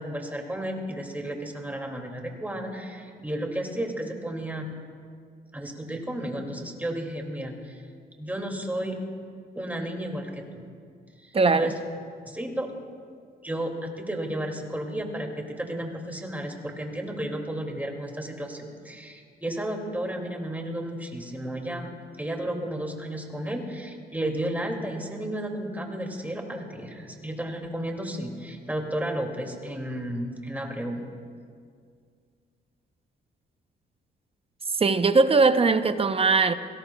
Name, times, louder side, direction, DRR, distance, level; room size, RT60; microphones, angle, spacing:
voice 1, 0.0-4.7 5.5-7.8 8.2-9.0 9.6-10.6 11.2-11.7 12.3-12.7 13.4-21.9 22.2-31.0, right 1 dB, 10° right, 2.3 m, -33 dB
voice 2, 11.3-11.7 34.8-36.5, right 4 dB, 30° right, 0.7 m, -20 dB
27.0 x 18.0 x 2.3 m
cardioid pair, 90°, 20 cm